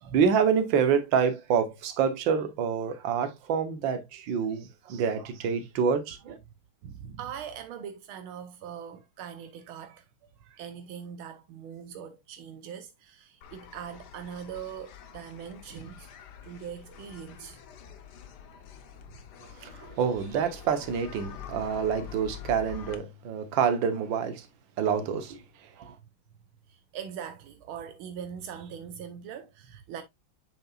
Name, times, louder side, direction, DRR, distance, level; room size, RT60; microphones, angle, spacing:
voice 1, 0.1-6.4 19.4-24.5 24.8-25.9, right 7 dB, 65° right, 1.7 m, -27 dB
voice 2, 6.8-10.1 10.4-16.1 16.4-17.6 26.0-26.1 26.7-30.0, right 8 dB, 85° right, 1.6 m, -41 dB
sound 1, 13.4-22.9, left 9 dB, 60° left, 1.3 m, -46 dB
7.6 x 5.7 x 2.4 m
omnidirectional pair, 2.3 m